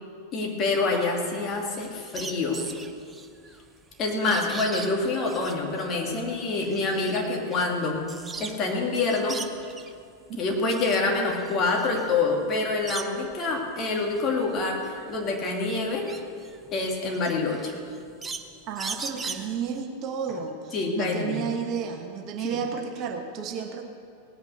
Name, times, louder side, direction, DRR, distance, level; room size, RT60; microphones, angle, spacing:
voice 1, 0.3-2.7 4.0-9.4 10.4-16.0 16.7-17.7 20.7-21.4 22.4-22.6, left 3 dB, 30° left, 0 dB, 2.5 m, -26 dB
sound 1, 1.5-8.7 9.0-10.0 10.4-13.4 13.8-19.8, right 4 dB, 15° right, 0.9 m, -40 dB
voice 2, 18.7-23.9, right 6 dB, 35° right, 4 dB, 1.2 m, -32 dB
18.0 x 9.6 x 6.6 m, 2.3 s
figure-of-eight pair, 90°, 0 cm